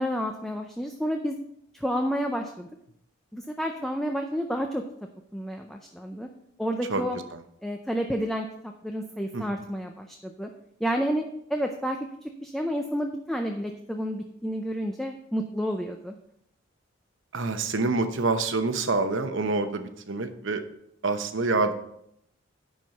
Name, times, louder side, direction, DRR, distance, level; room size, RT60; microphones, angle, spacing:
voice 1, 0.0-1.4 1.7-2.7 3.3-4.8 5.3-6.3 6.6-7.2 7.6-10.5 10.8-11.2 11.5-12.0 12.4-16.2, equal, ahead, 3 dB, 0.4 m, -30 dB
voice 2, 17.3-20.6 21.0-21.7, right 3 dB, 65° right, 8 dB, 0.9 m, -26 dB
10.5 x 4.6 x 5.3 m, 0.75 s
head